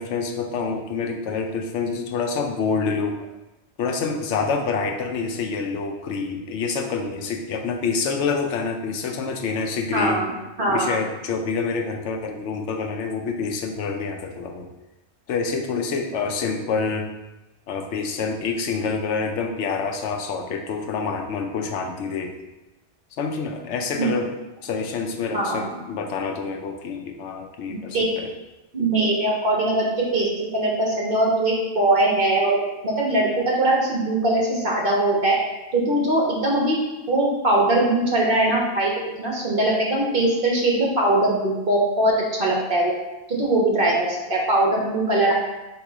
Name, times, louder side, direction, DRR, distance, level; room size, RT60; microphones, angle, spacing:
voice 1, 0.0-3.2 3.8-10.2 10.7-14.7 15.3-17.1 17.7-22.4 23.2-24.3 24.6-28.3, left 4 dB, 85° left, 4 dB, 0.9 m, -27 dB
voice 2, 9.9-10.3 10.6-11.0 24.0-24.1 25.3-25.7 27.7-28.1 28.7-29.8 30.1-32.6 32.8-35.3 35.7-36.8 37.1-42.9 43.3-45.3, right 1 dB, 50° right, -3 dB, 1.2 m, -21 dB
3.6 x 3.0 x 4.7 m, 1.0 s
omnidirectional pair, 1.2 m